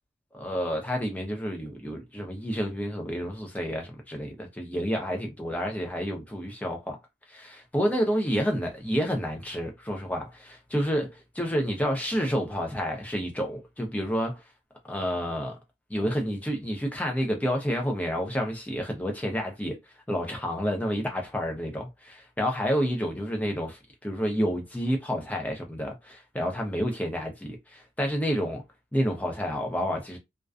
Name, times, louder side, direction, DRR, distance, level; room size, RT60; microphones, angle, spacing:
voice 1, 0.3-7.0 7.3-11.1 11.4-14.4 14.9-15.5 15.9-19.8 20.1-28.6 28.9-30.2, equal, 10° left, 0.5 m, -29 dB
2.4 x 2.2 x 2.4 m
head